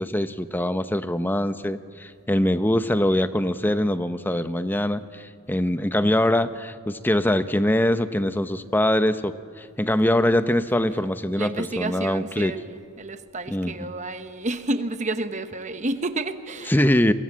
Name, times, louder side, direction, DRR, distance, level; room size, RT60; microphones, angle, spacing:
voice 1, 0.0-12.5 13.5-13.9 16.7-17.1, left 1 dB, 10° left, 11 dB, 0.7 m, -23 dB
voice 2, 11.3-16.8, right 2 dB, 35° right, 10 dB, 1.2 m, -30 dB
28.5 x 23.0 x 7.5 m, 2.3 s
head